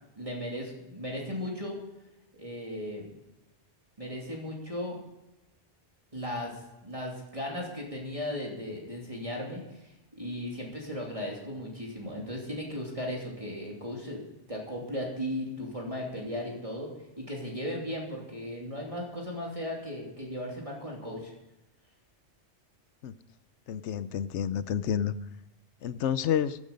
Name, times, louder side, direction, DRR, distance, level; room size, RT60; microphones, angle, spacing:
voice 1, 0.2-1.8 2.3-3.1 4.0-5.0 6.1-14.2 14.5-16.9 17.2-21.3, left 1 dB, 30° right, -2 dB, 2.9 m, -36 dB
voice 2, 23.7-25.1 25.8-26.6, left 9 dB, 75° left, 14 dB, 1.0 m, -29 dB
15.0 x 11.0 x 5.3 m, 0.97 s
omnidirectional pair, 1.2 m